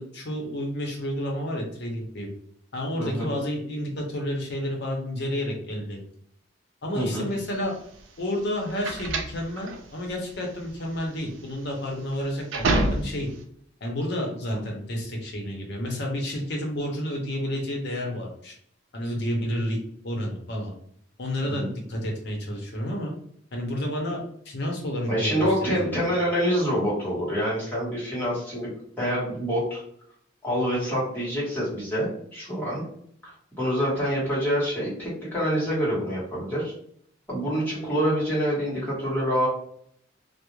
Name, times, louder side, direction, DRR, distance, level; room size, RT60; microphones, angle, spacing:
voice 1, 0.0-2.3 2.7-6.0 6.8-7.8 8.2-13.3 13.8-18.6 18.9-19.8 20.0-20.7 21.2-23.1 23.5-24.2 24.5-25.9, equal, 60° left, 0 dB, 0.7 m, -30 dB
voice 2, 3.0-3.3 6.9-7.2 14.5-14.6 21.6-21.7 25.1-28.7 29.0-29.8 30.4-32.8 33.2-36.7 37.3-39.5, equal, 10° left, -8 dB, 1.0 m, -26 dB
sound 1, 7.4-13.4, right 2 dB, 70° right, 0.4 m, -29 dB
2.3 x 2.0 x 3.0 m, 0.65 s
head